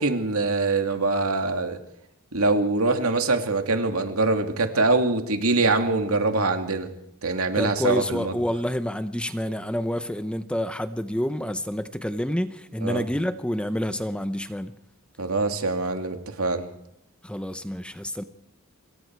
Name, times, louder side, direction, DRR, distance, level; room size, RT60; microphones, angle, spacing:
voice 1, 0.0-1.8 2.3-6.9 7.2-8.4 12.8-13.0 15.2-16.7, right 3 dB, 80° right, 5 dB, 2.6 m, -24 dB
voice 2, 7.6-14.7 17.2-18.2, equal, 5° left, 10 dB, 0.9 m, -28 dB
26.5 x 22.5 x 4.7 m, 0.78 s
head